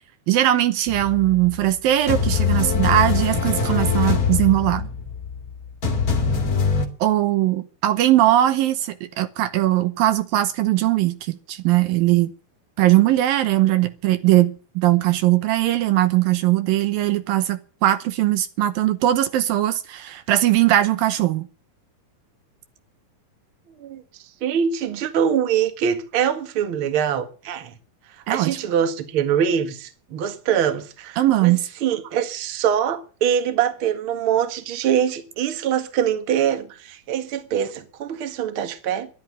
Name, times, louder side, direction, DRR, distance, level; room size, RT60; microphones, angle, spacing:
voice 1, 0.3-4.9 7.0-12.3 12.8-21.5 28.3-28.6 31.2-31.7, right 14 dB, 75° right, 2.6 m, -20 dB
sound 1, 0.9-1.7 2.1-6.9, left 5 dB, 30° left, 1.9 m, -23 dB
voice 2, 24.4-27.7 28.3-31.5 31.8-39.1, right 8 dB, 45° right, 2.0 m, -23 dB
12.0 x 10.5 x 9.6 m
omnidirectional pair, 4.3 m